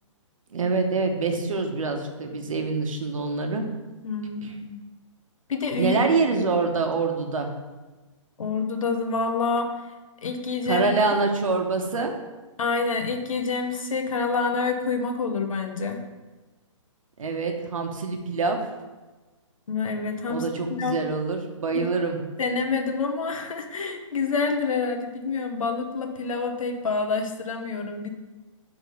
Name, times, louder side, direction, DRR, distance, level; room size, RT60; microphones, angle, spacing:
voice 1, 0.5-3.6 4.4-4.5 5.8-7.5 10.7-12.1 17.2-18.6 20.3-22.2, right 4 dB, 80° right, 4 dB, 1.0 m, -25 dB
voice 2, 4.0-4.8 5.5-6.0 8.4-9.7 10.2-10.9 12.6-16.0 19.7-21.0 22.4-28.1, left 4 dB, 90° left, 5 dB, 0.9 m, -27 dB
4.9 x 3.7 x 5.2 m, 1.2 s
hypercardioid pair, 170°, 17 cm